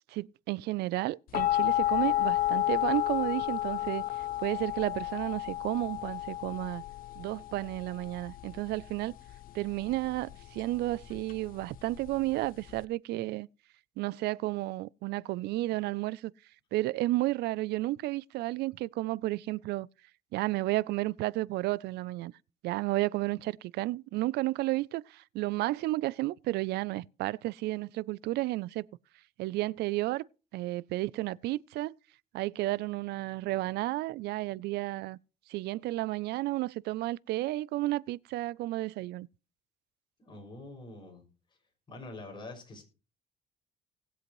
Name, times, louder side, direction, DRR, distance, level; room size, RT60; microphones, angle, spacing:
voice 1, 0.1-6.8 7.2-9.1 9.5-13.5 14.0-16.3 16.7-19.9 20.3-22.3 22.6-28.9 29.4-30.2 30.5-32.0 32.3-35.2 35.5-39.3, right 18 dB, 75° right, 0.4 m, -32 dB
sound 1, 1.3-12.8, left 14 dB, 60° left, 0.5 m, -32 dB
voice 2, 40.2-41.2 41.9-42.8, left 2 dB, 25° left, 5.9 m, -45 dB
19.5 x 7.9 x 3.1 m
cardioid pair, 110°, 17 cm